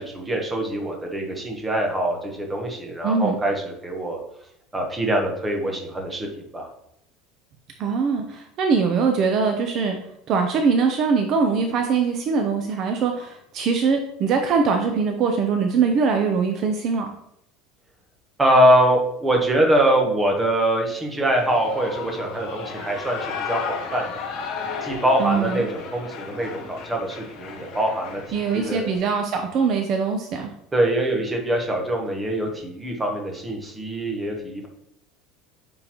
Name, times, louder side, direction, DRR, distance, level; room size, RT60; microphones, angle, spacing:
voice 1, 0.0-4.2 4.7-6.3 6.5-6.7 18.4-24.2 24.8-28.2 28.5-28.8 30.7-34.7, right 1 dB, 10° right, 1 dB, 1.0 m, -23 dB
voice 2, 3.0-3.4 7.8-10.0 10.3-17.1 25.2-25.6 28.3-30.5, right 5 dB, 35° right, 4 dB, 0.5 m, -22 dB
Shout / Cheering, 21.2-29.0, left 5 dB, 45° left, 1.2 m, -34 dB
8.8 x 3.8 x 3.0 m, 0.75 s
cardioid pair, 175°, 0 cm